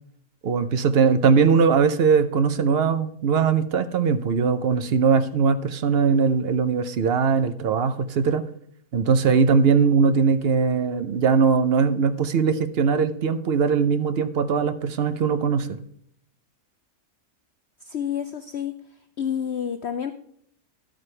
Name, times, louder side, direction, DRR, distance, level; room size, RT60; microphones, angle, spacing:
voice 1, 0.4-8.4 8.9-15.8, right 5 dB, 50° right, 10 dB, 0.8 m, -20 dB
voice 2, 17.8-18.7 19.2-20.1, left 8 dB, 60° left, 9 dB, 0.8 m, -28 dB
11.5 x 9.0 x 3.3 m, 0.66 s
omnidirectional pair, 1.5 m